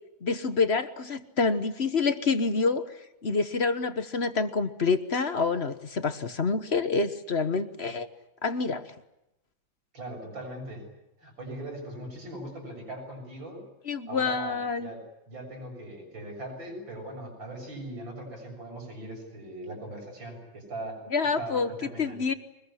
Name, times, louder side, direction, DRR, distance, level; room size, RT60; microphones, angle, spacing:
voice 1, 0.2-2.9 3.2-8.1 8.4-8.9 13.9-14.9 21.1-22.3, left 4 dB, 40° left, 11 dB, 1.2 m, -27 dB
voice 2, 9.9-10.9 11.2-13.6 14.1-21.0 21.4-22.2, right 1 dB, 80° right, 3 dB, 7.6 m, -40 dB
24.0 x 21.0 x 9.9 m, 0.89 s
omnidirectional pair, 2.1 m